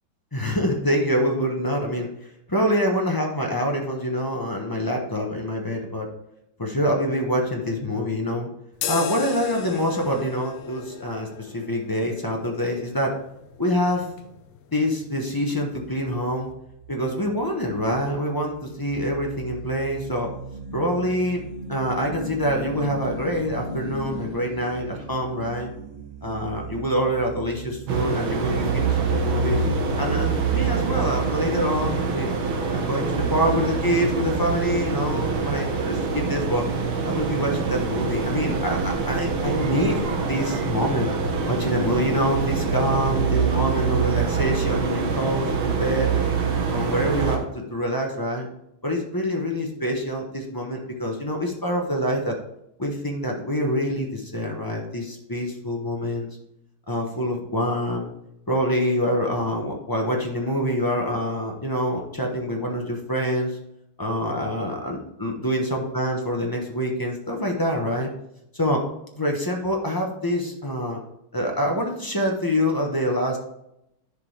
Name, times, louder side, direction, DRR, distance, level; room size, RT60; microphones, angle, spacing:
voice 1, 0.3-2.1 2.5-6.1 6.6-8.5 8.9-13.1 13.6-14.1 14.7-16.5 16.9-20.3 20.7-21.4 21.7-25.7 26.2-29.6 30.0-32.4 32.7-36.0 36.3-36.7 37.0-40.0 40.3-41.1 41.5-46.1 46.7-48.5 48.8-52.4 52.8-56.4 56.9-58.1 58.5-63.6 64.0-68.1 68.5-68.8 69.1-71.0 71.3-73.4, equal, 25° left, 1 dB, 0.4 m, -26 dB
sound 1, 8.7-16.5, left 8 dB, 70° left, 1.2 m, -38 dB
sound 2, 15.7-29.9, right 2 dB, 30° right, 0.5 m, -38 dB
sound 3, 27.9-47.4, right 5 dB, 75° right, 1.9 m, -25 dB
10.5 x 5.4 x 3.3 m, 0.82 s
omnidirectional pair, 2.3 m